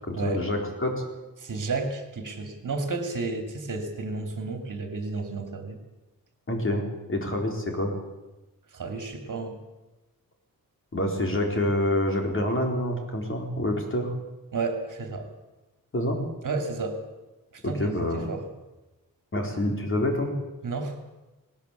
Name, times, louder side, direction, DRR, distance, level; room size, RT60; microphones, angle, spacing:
voice 1, 0.1-0.9 6.5-6.8 7.1-7.9 10.9-14.1 15.9-16.2 17.6-18.3 19.3-20.3, left 1 dB, 35° left, 2 dB, 4.2 m, -27 dB
voice 2, 1.4-5.8 8.7-9.6 14.5-15.3 16.4-17.0 17.5-18.4 20.6-21.0, right 3 dB, 60° right, 6 dB, 2.9 m, -32 dB
19.0 x 18.0 x 8.4 m, 1.1 s
wide cardioid pair, 160°, 36 cm